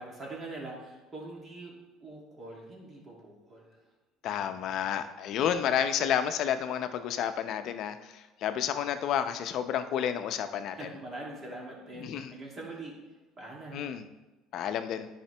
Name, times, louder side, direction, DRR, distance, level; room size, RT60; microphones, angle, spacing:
voice 1, 0.0-3.8 10.7-13.0 13.4-14.0, right 2 dB, 30° right, -3 dB, 2.5 m, -43 dB
voice 2, 4.2-10.9 12.0-12.3 13.7-14.0 14.5-15.1, left 9 dB, 60° left, 9 dB, 0.6 m, -30 dB
10.5 x 5.1 x 3.4 m, 1.1 s
supercardioid pair, 105°, 0 cm